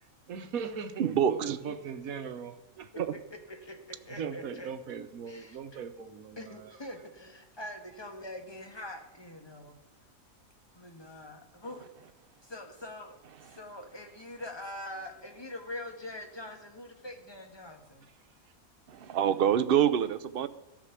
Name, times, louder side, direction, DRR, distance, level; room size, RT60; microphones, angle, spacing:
voice 1, 0.3-3.1 4.1-6.8, right 6 dB, 75° right, 9 dB, 1.4 m, -39 dB
voice 2, 1.0-1.6 3.0-3.1 19.0-20.5, right 9 dB, 50° right, 12 dB, 0.8 m, -26 dB
voice 3, 3.3-4.7 5.3-5.6 6.4-9.8 10.7-11.9 12.4-18.1, left 1 dB, 20° left, 4 dB, 1.5 m, -44 dB
13.5 x 6.3 x 8.2 m, 0.98 s
omnidirectional pair, 1.5 m